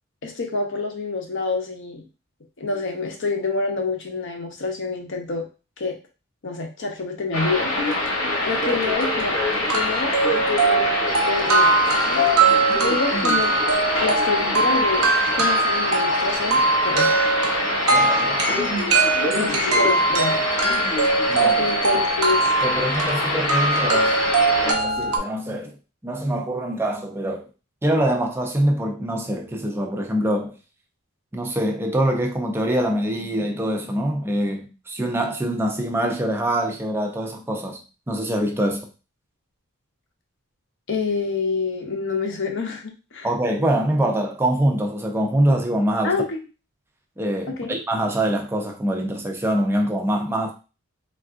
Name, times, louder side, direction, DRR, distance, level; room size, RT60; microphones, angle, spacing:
voice 1, 0.2-2.1 2.6-5.5 5.8-6.0 6.4-7.7 8.4-9.4 9.7-10.9 11.3-12.3 12.8-13.5 14.0-15.1 15.3-17.3 19.3-20.5 21.6-22.5 40.9-43.3 46.0-46.4 47.6-47.7, left 4 dB, 55° left, 0.7 m, -27 dB
sound 1, 7.3-24.7, left 2 dB, 90° left, 1.1 m, -24 dB
sound 2, 8.7-8.8 9.2-9.3 9.7-25.2, right 3 dB, 85° right, 0.7 m, -21 dB
voice 2, 17.9-18.4 21.3-21.6 22.6-24.1 24.6-25.7 26.0-27.5 27.8-30.5 31.3-37.8 38.1-38.9 43.2-46.2 47.2-50.5, right 1 dB, 10° right, 0.4 m, -24 dB
3.5 x 2.4 x 2.4 m
head